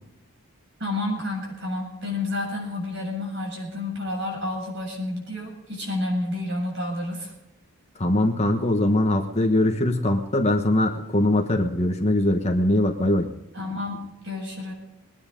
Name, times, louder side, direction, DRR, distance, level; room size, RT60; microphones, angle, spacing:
voice 1, 0.8-7.3 13.5-14.7, left 2 dB, 55° right, 0 dB, 7.4 m, -30 dB
voice 2, 8.0-13.3, left 1 dB, 30° left, 3 dB, 1.2 m, -22 dB
22.0 x 9.8 x 5.2 m, 0.90 s
head